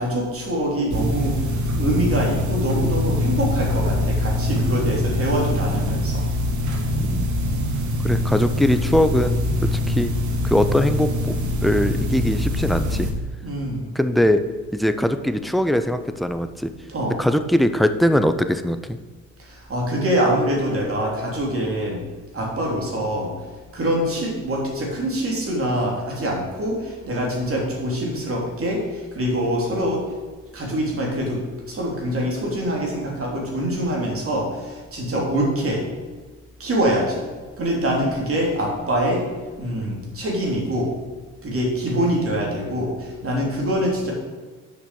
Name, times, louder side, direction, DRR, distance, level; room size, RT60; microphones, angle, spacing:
voice 1, 0.0-6.2 13.4-13.9 16.9-17.1 19.4-22.0 22.3-23.3 23.7-30.0 30.5-35.9 36.6-37.3 37.6-39.3 39.6-40.9 41.4-44.1, equal, 45° right, -1 dB, 3.2 m, -24 dB
sound 1, 0.9-13.1, left 1 dB, 75° right, 1.4 m, -23 dB
voice 2, 7.0-7.3 8.0-10.1 10.4-11.3 11.6-13.1 13.9-14.4 14.7-16.7 17.1-19.0 35.1-35.3, left 1 dB, ahead, 9 dB, 0.6 m, -21 dB
7.5 x 6.0 x 6.9 m, 1.3 s
cardioid pair, 90°, 30 cm